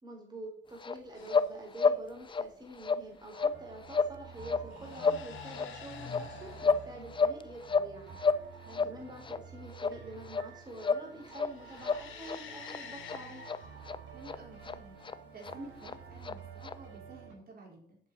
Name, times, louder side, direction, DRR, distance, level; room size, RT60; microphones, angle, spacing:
voice 1, 0.0-8.2 8.8-13.4, right 1 dB, 20° right, -1 dB, 3.8 m, -47 dB
sound 1, 0.8-1.0 1.3-1.5 1.8-2.0 2.3-2.5 2.8-3.0 3.3-3.6 3.9-4.1 4.4-4.7 5.0-5.2 5.5-5.7 6.0-6.8 7.1-7.9 8.2-8.4 8.7-8.9 9.2-9.4 9.8-10.0 10.3-10.5 10.8-11.0 11.3-11.5 11.8-12.4 12.7-12.8 13.1-13.2 13.5-13.6 13.9-14.0 14.3-14.4 14.7-14.8 15.0-15.1 15.4-15.5 15.8-15.9 16.2-16.4 16.6-16.7, left 5 dB, 25° left, 0.5 m, -29 dB
sound 2, 1.2-1.6 3.1-3.5 4.5-7.0 11.2-13.8 15.6-16.4, left 7 dB, 80° left, 1.9 m, -48 dB
sound 3, 3.5-17.3, right 6 dB, 70° right, 4.9 m, -51 dB
voice 2, 14.1-15.0 15.3-18.0, right 2 dB, 50° right, -1 dB, 4.7 m, -50 dB
7.9 x 7.3 x 7.1 m, 0.62 s
cardioid pair, 90°, 20 cm